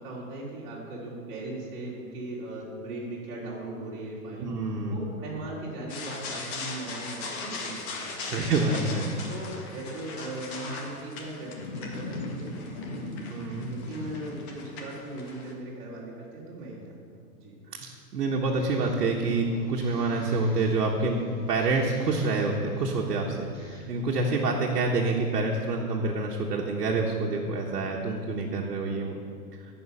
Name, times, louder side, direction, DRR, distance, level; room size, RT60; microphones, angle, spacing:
voice 1, 0.0-4.5 4.9-8.5 9.3-13.1 13.6-17.5, right 2 dB, 30° right, -7 dB, 2.8 m, -39 dB
voice 2, 4.4-5.0 8.2-9.1 13.3-13.7 18.1-21.2 21.5-23.5 23.9-29.2, right 3 dB, 85° right, -1 dB, 1.3 m, -27 dB
sound 1, 5.9-15.5, left 3 dB, 45° left, 1.7 m, -38 dB
sound 2, 18.6-23.8, equal, 10° left, 2.0 m, -48 dB
15.0 x 5.5 x 5.5 m, 2.3 s
hypercardioid pair, 155°, 46 cm